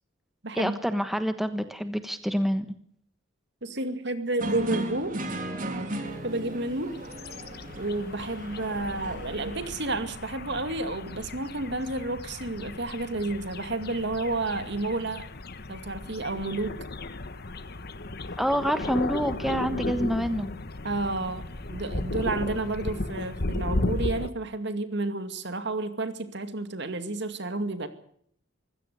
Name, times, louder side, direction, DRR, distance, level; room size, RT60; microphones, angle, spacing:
voice 1, 0.5-2.7 18.4-20.5, equal, ahead, 9 dB, 1.2 m, -27 dB
voice 2, 3.6-5.2 6.2-7.0 7.8-15.3 15.7-16.8 20.8-21.4 21.7-27.9, right 2 dB, 60° right, 9 dB, 2.3 m, -31 dB
sound 1, 4.4-9.7, right 1 dB, 45° right, 3.5 m, -36 dB
sound 2, 6.6-24.3, left 2 dB, 55° left, 1.3 m, -35 dB
24.0 x 16.5 x 6.9 m, 0.65 s
head